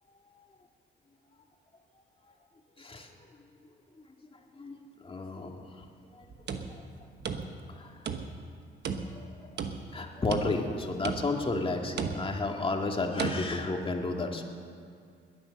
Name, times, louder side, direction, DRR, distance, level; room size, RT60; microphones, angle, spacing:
voice 1, 2.8-3.5 3.9-4.0 4.3-5.9 6.1-7.1 7.7-8.1 9.0-9.6 9.9-14.4, left 3 dB, 25° left, 2 dB, 2.1 m, -33 dB
sound 1, 6.2-7.8 8.1-8.5 8.8-10.0 10.3-10.8 11.0-11.5 12.0-12.5 13.2-13.4, right 5 dB, 60° right, 1.2 m, -35 dB
21.0 x 9.5 x 6.6 m, 2.3 s
cardioid pair, 90°, 20 cm